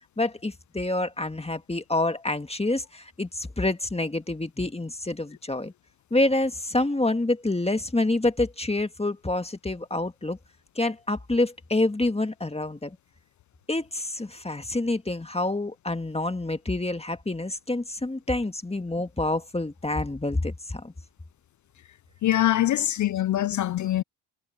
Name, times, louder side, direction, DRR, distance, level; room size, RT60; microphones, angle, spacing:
voice 1, 0.2-5.7 6.1-10.4 10.8-13.0 13.7-20.9, left 2 dB, 15° left, 1.9 m, -27 dB
voice 2, 22.2-24.0, left 13 dB, 45° left, 0.4 m, -23 dB
supercardioid pair, 60°, 44 cm